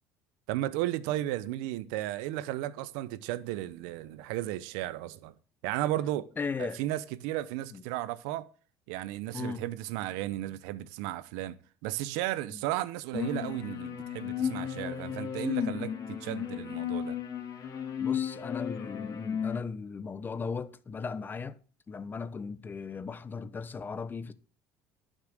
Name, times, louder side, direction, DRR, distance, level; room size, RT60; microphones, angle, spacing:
voice 1, 0.5-5.3 5.6-6.3 6.6-8.4 8.9-11.6 11.8-17.2, right 14 dB, 85° right, 0.8 m, -34 dB
voice 2, 6.4-6.8 7.7-7.8 9.3-9.6 12.5-12.6 18.0-21.6 21.9-24.3, left 5 dB, 25° left, 1.0 m, -37 dB
sound 1, 13.1-19.6, left 8 dB, 50° left, 2.6 m, -34 dB
11.5 x 6.4 x 6.5 m
supercardioid pair, 105°, 8 cm